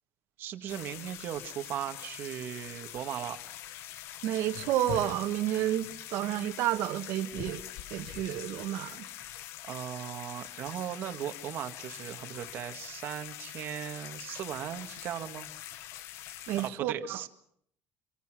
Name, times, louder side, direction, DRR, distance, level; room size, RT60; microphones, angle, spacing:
voice 1, 0.4-3.4 9.6-15.5 16.6-17.3, right 11 dB, 45° right, 1.8 m, -38 dB
sound 1, 0.7-16.7, left 12 dB, 65° left, 1.1 m, -44 dB
voice 2, 4.2-7.6 7.9-9.1 16.5-17.2, right 13 dB, 65° right, 2.0 m, -30 dB
26.5 x 25.0 x 6.3 m
cardioid pair, 175°, 5 cm